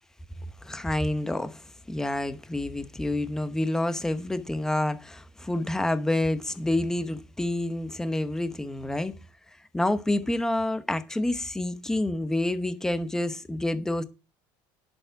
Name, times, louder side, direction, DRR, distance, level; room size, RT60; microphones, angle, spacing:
voice 1, 0.6-9.2 9.7-14.0, left 1 dB, 5° left, 0.9 m, -28 dB
10.5 x 7.0 x 4.7 m
cardioid pair, 150°, 10 cm